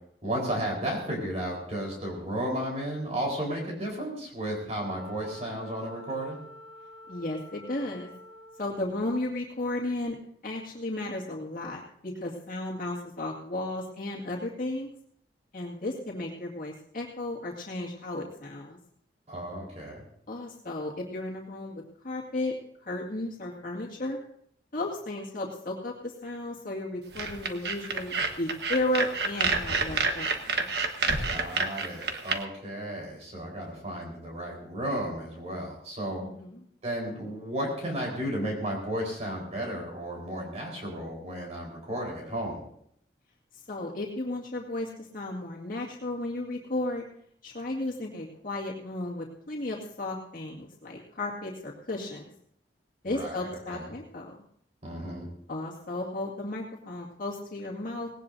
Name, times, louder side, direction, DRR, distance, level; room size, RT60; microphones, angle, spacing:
voice 1, 0.2-6.4 19.3-20.0 31.2-36.2 36.8-42.6 53.1-53.9 54.8-55.3, right 1 dB, 40° right, -1 dB, 4.3 m, -33 dB
Wind instrument woodwind instrument, 4.8-8.9, equal, 10° left, 4.2 m, -48 dB
voice 2, 7.1-8.1 8.6-10.2 10.4-14.9 15.5-18.8 20.3-22.5 22.8-24.2 24.7-30.6 36.2-36.6 43.5-47.0 47.4-52.2 53.0-54.4 55.5-58.1, left 2 dB, 50° left, -3 dB, 2.1 m, -34 dB
sound 1, 27.1-32.4, right 4 dB, 70° right, 1.3 m, -28 dB
18.5 x 17.5 x 2.7 m, 0.67 s
head